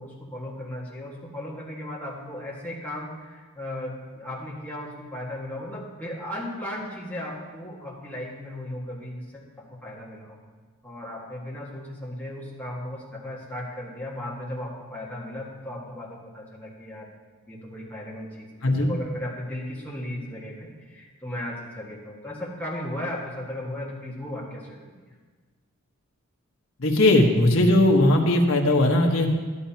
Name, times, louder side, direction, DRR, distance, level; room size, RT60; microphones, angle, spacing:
voice 1, 0.0-10.4 10.8-17.1 17.5-25.0, left 1 dB, 10° left, -5 dB, 1.7 m, -36 dB
voice 2, 26.8-29.3, left 1 dB, 60° left, 0 dB, 1.3 m, -19 dB
12.0 x 11.0 x 2.9 m, 1.5 s
head